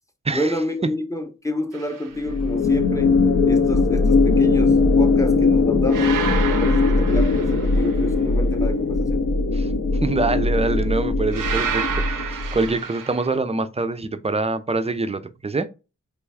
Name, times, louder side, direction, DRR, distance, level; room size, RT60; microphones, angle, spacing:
voice 1, 0.3-3.1 3.4-6.2 6.5-9.2, left 1 dB, 10° left, 0.7 m, -29 dB
sound 1, 1.7-2.1 5.9-8.1 11.3-13.4, right 7 dB, 85° right, 0.5 m, -30 dB
sound 2, 2.2-12.7, left 3 dB, 65° left, 0.7 m, -20 dB
voice 2, 10.0-15.7, right 3 dB, 20° right, 0.4 m, -25 dB
3.4 x 2.3 x 3.3 m
cardioid pair, 40°, 32 cm